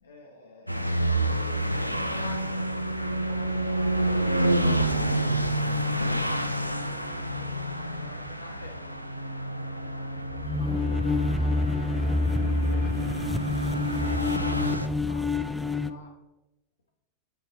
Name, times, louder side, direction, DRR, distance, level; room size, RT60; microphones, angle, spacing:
voice 1, 0.0-9.1 9.3-13.1 13.5-15.3 15.6-16.1, left 3 dB, 70° left, 0 dB, 0.7 m, -50 dB
sound 1, 0.7-14.9, right 1 dB, 90° right, 0.3 m, -29 dB
sound 2, 10.3-15.9, left 2 dB, ahead, 0.3 m, -27 dB
5.1 x 5.1 x 3.8 m, 0.94 s
figure-of-eight pair, 90°, 0 cm